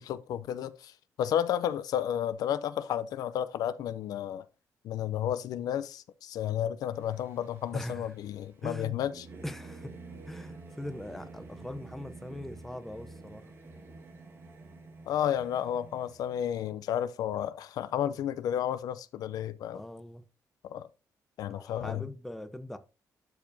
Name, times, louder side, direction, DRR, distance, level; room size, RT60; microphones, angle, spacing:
voice 1, 0.1-0.9 1.2-4.4 4.8-9.3 15.1-19.8 20.6-20.9 21.4-22.0, left 10 dB, 85° left, 0.5 m, -32 dB
Singing / Musical instrument, 6.9-16.5, right 3 dB, 40° right, 1.6 m, -49 dB
voice 2, 7.7-8.1 8.6-9.0 9.4-9.9 10.3-13.5 19.7-20.2 21.5-22.8, left 1 dB, 5° left, 0.6 m, -41 dB
11.5 x 4.7 x 2.7 m
cardioid pair, 155°, 6 cm